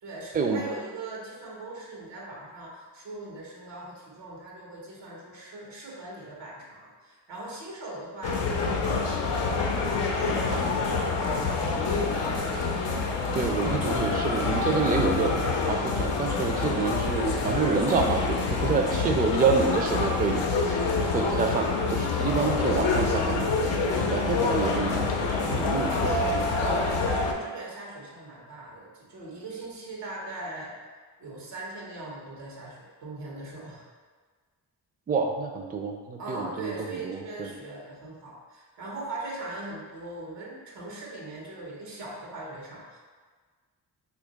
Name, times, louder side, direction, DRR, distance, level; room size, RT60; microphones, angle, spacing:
voice 1, 0.0-9.7 10.6-12.3 16.5-16.8 21.0-21.2 25.5-25.8 26.6-30.7 31.2-33.8 36.2-43.0, right 2 dB, 90° right, -3 dB, 0.9 m, -40 dB
sound 1, 8.2-27.3, left 4 dB, 85° left, 0.6 m, -26 dB
voice 2, 10.5-10.9 13.3-15.4 15.7-23.5 23.9-26.2 35.1-37.5, right 5 dB, 20° right, 3 dB, 0.4 m, -28 dB
3.0 x 2.5 x 3.8 m, 1.5 s
cardioid pair, 55°, 42 cm